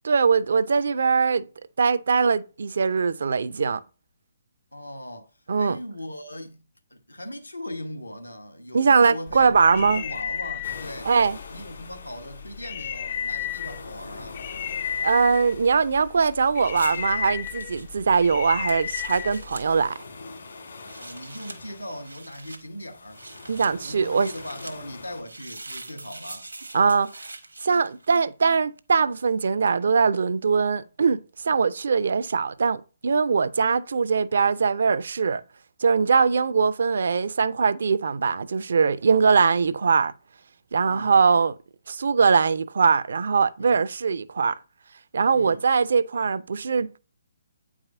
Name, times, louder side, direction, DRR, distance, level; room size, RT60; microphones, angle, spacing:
voice 1, 0.0-1.4 1.8-3.8 5.5-5.8 8.7-10.0 11.1-11.4 15.0-20.0 23.5-24.3 26.7-27.3 27.6-35.4 35.8-40.1 40.7-41.5 41.9-44.6 45.1-47.0, right 5 dB, 60° right, 0.4 m, -21 dB
voice 2, 4.7-6.6 6.9-11.1 11.5-14.4 21.0-23.2 23.7-26.5 40.9-41.2 43.6-43.9 45.3-45.6, left 1 dB, 85° left, 1.1 m, -39 dB
sound 1, 9.3-19.9, left 9 dB, 40° left, 0.4 m, -34 dB
sound 2, 10.6-25.2, left 3 dB, 60° left, 1.6 m, -45 dB
sound 3, 16.7-19.7 20.7-21.6 22.0-22.6 23.1-23.7 24.1-24.8 25.2-28.4 29.7-29.8, right 2 dB, 80° right, 0.8 m, -43 dB
8.6 x 4.9 x 2.5 m
figure-of-eight pair, 135°, 0 cm